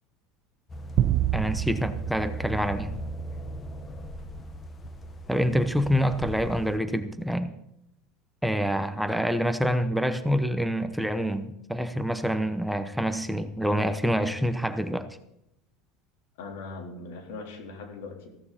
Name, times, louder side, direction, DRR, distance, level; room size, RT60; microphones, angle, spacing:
sound 1, 0.7-6.8, right 1 dB, 20° left, 1.1 m, -38 dB
sound 2, 1.0-3.6, right 13 dB, 50° right, 0.4 m, -29 dB
voice 1, 1.3-2.9 5.3-7.5 8.4-15.1, equal, ahead, 9 dB, 0.8 m, -26 dB
voice 2, 16.4-18.4, left 3 dB, 85° left, 2 dB, 3.8 m, -40 dB
15.0 x 14.0 x 4.3 m, 0.79 s
supercardioid pair, 140°, 0 cm